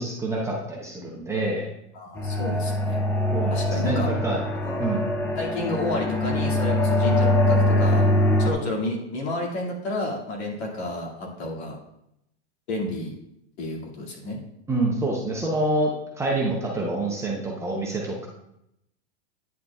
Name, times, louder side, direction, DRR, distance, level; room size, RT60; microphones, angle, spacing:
voice 1, 0.0-1.7 3.3-3.5 3.8-4.4 4.8-5.0 14.7-15.9 16.2-18.3, right 2 dB, 10° right, -3 dB, 0.7 m, -26 dB
voice 2, 1.9-3.0 3.5-4.1 4.6-4.8 5.4-8.1 8.4-11.8 12.7-13.1 13.6-14.4, left 2 dB, 65° left, -1 dB, 2.3 m, -30 dB
sound 1, 2.1-8.5, left 1 dB, 5° left, 0.3 m, -23 dB
9.6 x 6.5 x 2.4 m, 0.80 s
supercardioid pair, 145°, 35 cm